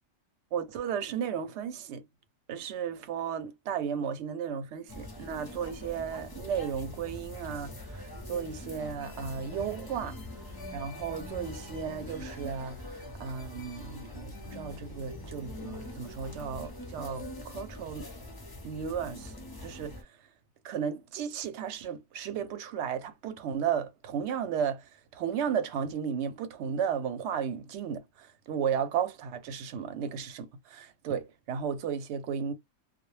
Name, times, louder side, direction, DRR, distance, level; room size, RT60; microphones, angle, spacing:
voice 1, 0.5-2.0 2.5-10.2 10.7-12.8 13.2-18.1 18.6-19.3 19.6-20.0 20.6-32.5, right 7 dB, 70° right, 0.8 m, -34 dB
sound 1, 4.9-20.0, left 1 dB, 30° left, 0.4 m, -43 dB
2.2 x 2.1 x 3.0 m
omnidirectional pair, 1.3 m